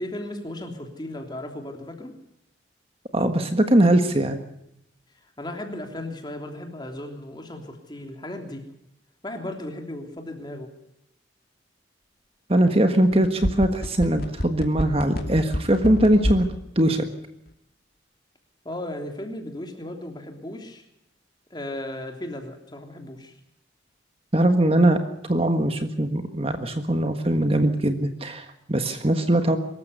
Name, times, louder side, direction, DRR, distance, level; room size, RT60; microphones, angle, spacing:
voice 1, 0.0-2.1 5.2-8.6 9.2-10.7 18.6-20.8 21.5-23.3, left 1 dB, 25° left, 4 dB, 3.2 m, -35 dB
voice 2, 3.1-4.4 12.5-16.4 16.7-17.1 24.3-25.0 25.3-29.6, right 1 dB, 30° right, 7 dB, 1.5 m, -21 dB
sound 1, 13.1-16.5 16.8-16.9, equal, 50° left, 2.6 m, -27 dB
24.0 x 14.0 x 8.2 m, 0.80 s
head